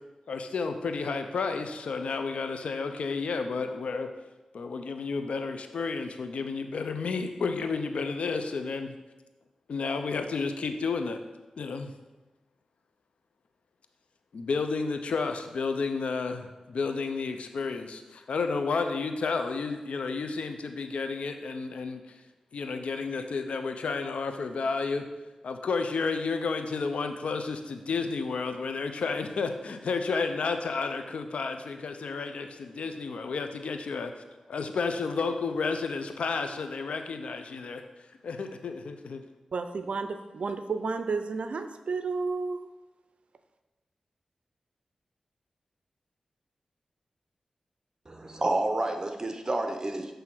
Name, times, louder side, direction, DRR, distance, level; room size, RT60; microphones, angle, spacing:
voice 1, 0.3-4.1 4.5-8.9 9.7-11.2 11.6-11.9 14.3-22.2 22.5-25.1 25.4-34.1 34.5-37.8 38.2-39.2, left 4 dB, 80° left, 7 dB, 0.6 m, -31 dB
voice 2, 39.5-42.7, right 4 dB, 70° right, 9 dB, 0.5 m, -32 dB
voice 3, 48.1-50.1, right 2 dB, 35° right, 5 dB, 0.9 m, -29 dB
7.6 x 3.4 x 6.0 m, 1.1 s
cardioid pair, 45°, 2 cm